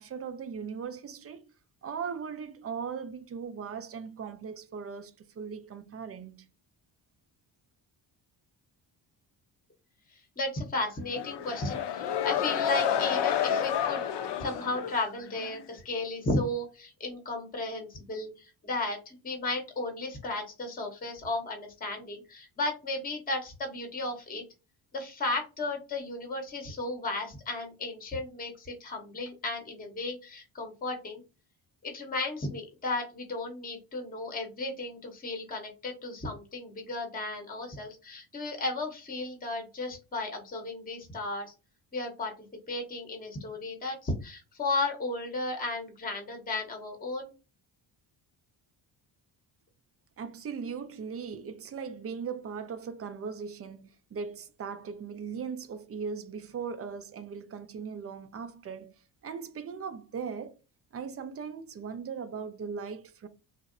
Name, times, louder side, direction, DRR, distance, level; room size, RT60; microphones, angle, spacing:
voice 1, 0.0-1.5 1.8-6.5 50.2-58.9 59.2-60.6 60.9-63.3, right 6 dB, 35° right, 0.4 m, -38 dB
voice 2, 10.4-14.0 14.4-24.4 24.9-31.2 31.8-41.5 41.9-47.3, left 2 dB, 20° left, 0.8 m, -34 dB
sound 1, 11.1-15.6, left 9 dB, 60° left, 0.5 m, -30 dB
2.6 x 2.0 x 2.5 m
supercardioid pair, 65°, 48 cm